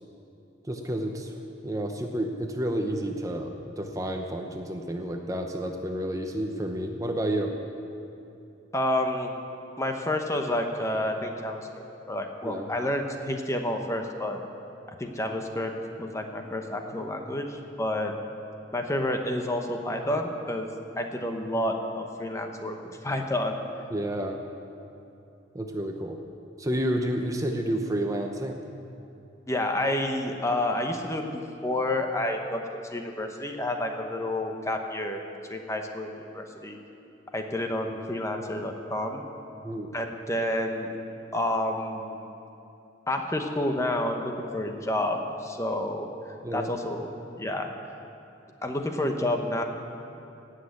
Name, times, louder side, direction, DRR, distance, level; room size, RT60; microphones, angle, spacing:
voice 1, 0.7-1.3 1.6-7.5 12.4-12.7 23.9-24.4 25.5-26.2 26.6-28.6 39.6-39.9 46.4-46.7, right 1 dB, 20° right, 3 dB, 0.7 m, -30 dB
voice 2, 8.7-9.3 9.8-14.4 15.0-15.7 16.0-18.2 18.7-20.7 21.0-23.6 29.5-35.2 35.5-36.8 37.3-39.3 39.9-40.9 41.3-42.2 43.1-46.1 46.5-47.1 47.4-47.7 48.6-49.6, left 1 dB, 15° left, 4 dB, 0.9 m, -29 dB
17.5 x 6.5 x 8.3 m, 2.8 s
head